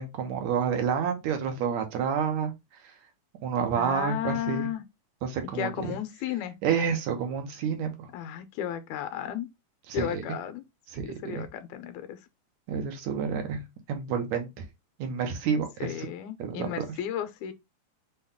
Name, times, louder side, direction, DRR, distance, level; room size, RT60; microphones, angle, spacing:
voice 1, 0.0-2.5 2.8-2.9 3.4-4.7 5.2-5.9 6.6-8.1 9.9-10.2 10.9-11.5 12.7-13.6 13.9-14.6 15.0-16.1 16.4-16.9, right 7 dB, 75° right, 2.1 m, -29 dB
voice 2, 3.7-4.8 5.5-6.6 8.1-9.5 9.9-10.6 11.0-12.2 15.8-17.5, left 10 dB, 85° left, 2.0 m, -33 dB
5.6 x 2.2 x 3.5 m
omnidirectional pair, 3.4 m